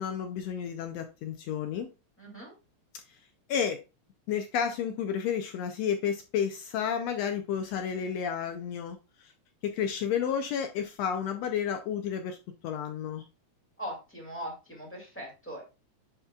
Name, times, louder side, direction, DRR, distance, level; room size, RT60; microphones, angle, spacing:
voice 1, 0.0-1.9 3.5-3.8 4.3-9.3 9.6-12.4 12.6-13.2, left 8 dB, 75° left, 1.6 m, -31 dB
voice 2, 2.2-2.5 13.8-15.7, equal, 5° left, 1.7 m, -40 dB
10.0 x 4.2 x 2.3 m
omnidirectional pair, 3.4 m